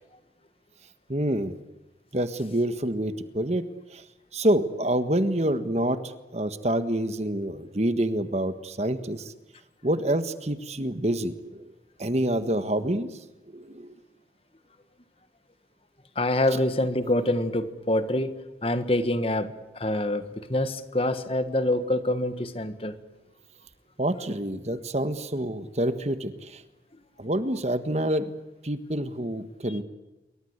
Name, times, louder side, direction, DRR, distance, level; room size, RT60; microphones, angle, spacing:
voice 1, 1.1-1.5 2.1-3.6 3.9-4.0 4.3-6.0 6.3-9.3 9.8-11.7 12.0-13.1 13.5-13.9 24.0-26.6 27.2-28.3 28.6-29.8, right 1 dB, 40° right, 11 dB, 1.5 m, -27 dB
voice 2, 16.1-18.3 18.6-23.0, left 1 dB, 30° left, 11 dB, 1.6 m, -26 dB
28.0 x 23.5 x 8.1 m, 1.0 s
head